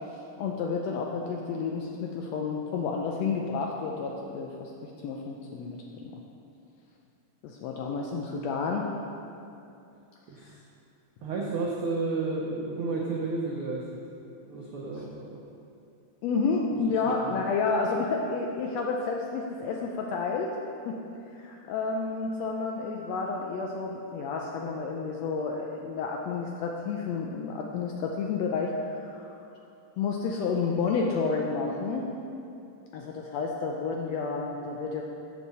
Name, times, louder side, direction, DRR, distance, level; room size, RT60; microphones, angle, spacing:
voice 1, 0.4-6.1 7.4-8.9 16.2-20.6 20.9-21.0 21.4-29.3 30.0-32.1 32.9-35.0, left 4 dB, 80° left, 0 dB, 1.5 m, -30 dB
voice 2, 11.2-14.0 14.5-15.4 16.9-17.0 17.2-17.4, right 3 dB, 90° right, -3 dB, 1.2 m, -32 dB
13.5 x 4.6 x 4.1 m, 2.6 s
omnidirectional pair, 3.5 m